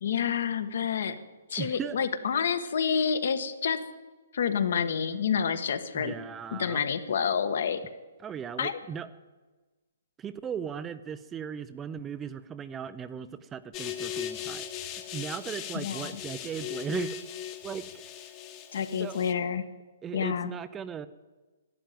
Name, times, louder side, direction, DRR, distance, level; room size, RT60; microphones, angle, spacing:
voice 1, 0.0-1.2 1.5-3.8 4.3-6.1 6.5-7.8 8.6-8.7 15.7-16.1 18.7-19.6 20.1-20.5, left 7 dB, 60° left, 10 dB, 1.3 m, -28 dB
voice 2, 1.6-2.0 5.9-6.9 8.2-9.1 10.2-17.2 17.6-18.3 18.9-19.3 20.0-21.1, right 7 dB, 10° right, 13 dB, 0.4 m, -37 dB
sound 1, 13.7-19.3, left 10 dB, 25° left, 1.1 m, -38 dB
12.0 x 11.5 x 9.2 m, 1.2 s
hypercardioid pair, 165°, 0 cm